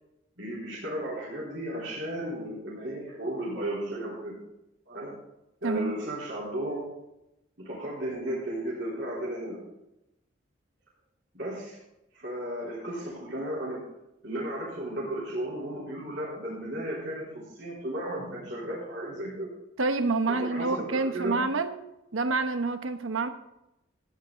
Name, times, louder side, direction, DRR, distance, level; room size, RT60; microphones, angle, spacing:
voice 1, 0.4-4.3 4.9-5.1 5.6-6.9 7.6-9.6 11.3-11.8 12.1-13.8 14.2-19.5 20.3-21.4, right 1 dB, 60° right, -7 dB, 3.8 m, -34 dB
voice 2, 5.6-5.9 19.8-21.8 22.1-23.3, right 3 dB, 85° right, 9 dB, 0.9 m, -27 dB
14.0 x 9.3 x 3.9 m, 0.89 s
head